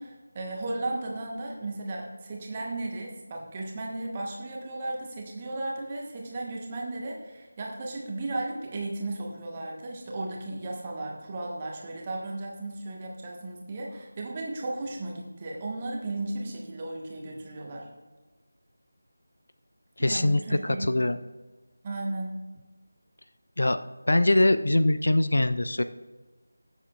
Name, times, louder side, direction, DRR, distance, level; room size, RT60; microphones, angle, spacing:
voice 1, 0.0-17.9 20.0-20.9 21.8-22.3, right 2 dB, 20° right, -1 dB, 1.5 m, -35 dB
voice 2, 20.0-21.2 23.6-23.8 24.1-25.8, left 1 dB, 60° left, 11 dB, 0.5 m, -23 dB
20.0 x 7.3 x 2.5 m, 1.2 s
figure-of-eight pair, 165°, 0 cm